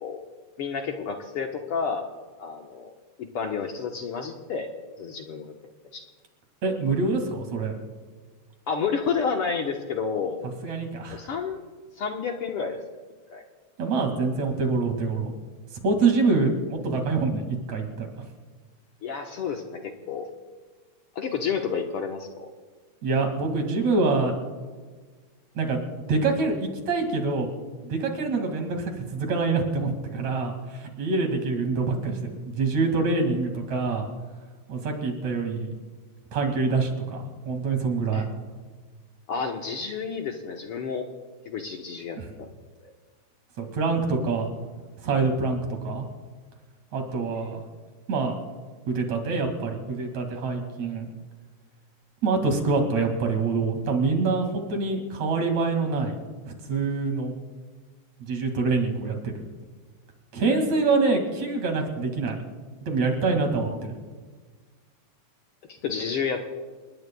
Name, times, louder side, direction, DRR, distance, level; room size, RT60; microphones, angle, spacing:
voice 1, 0.6-2.1 2.4-2.9 3.3-4.7 5.0-5.5 5.9-6.0 8.7-10.4 11.1-11.6 12.0-12.8 13.3-13.4 19.0-20.3 21.2-22.5 38.1-38.3 39.3-41.1 41.5-42.5 42.8-42.9 60.4-60.6 63.6-63.8 65.8-66.5, left 6 dB, 60° left, 2 dB, 1.8 m, -30 dB
voice 2, 6.6-7.8 10.4-11.2 13.8-15.3 15.8-18.1 23.0-24.3 25.6-25.8 26.1-27.5 27.8-34.1 34.7-35.7 36.3-38.3 42.2-42.3 43.6-44.5 45.0-46.1 46.9-47.6 48.1-48.4 48.9-51.1 52.2-56.2 56.5-57.3 58.3-59.4 60.3-62.4 62.8-64.0, right 3 dB, 70° right, 4 dB, 3.4 m, -25 dB
30.0 x 19.0 x 2.3 m, 1.4 s
omnidirectional pair, 3.3 m